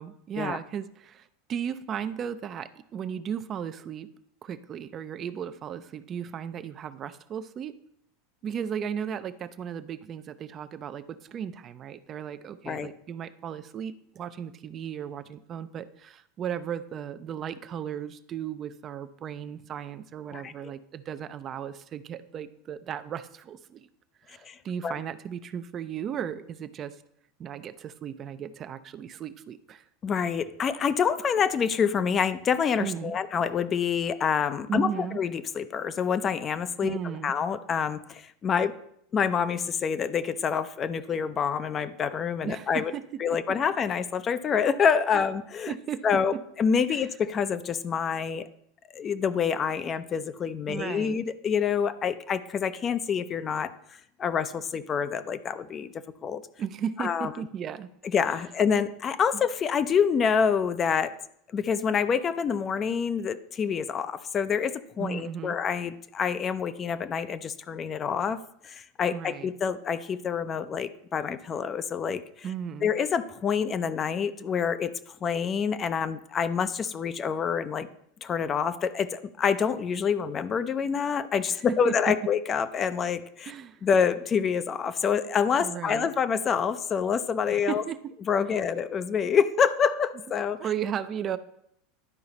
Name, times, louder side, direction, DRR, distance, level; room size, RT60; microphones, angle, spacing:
voice 1, 0.0-4.1 4.4-7.7 8.4-23.9 24.3-27.0 27.4-29.8 32.8-33.2 34.7-35.2 36.8-37.3 42.4-43.0 45.1-45.2 45.7-46.0 46.9-47.1 50.7-51.2 56.6-57.9 65.0-65.6 69.1-69.5 72.4-72.9 81.5-81.9 83.5-83.8 85.6-86.1 87.5-88.1 90.4-91.4, right 8 dB, 35° right, 12 dB, 0.5 m, -35 dB
voice 2, 20.3-20.7 24.5-24.9 30.0-38.7 39.1-42.9 43.2-45.7 46.0-48.5 48.9-53.7 54.2-55.9 56.2-56.4 57.0-57.3 58.1-61.1 61.5-68.4 68.6-72.2 72.8-77.9 78.2-83.5 83.8-87.8 88.3-90.6, left 7 dB, 30° left, 12 dB, 0.5 m, -27 dB
11.0 x 4.7 x 4.1 m, 0.73 s
hypercardioid pair, 85°, 0 cm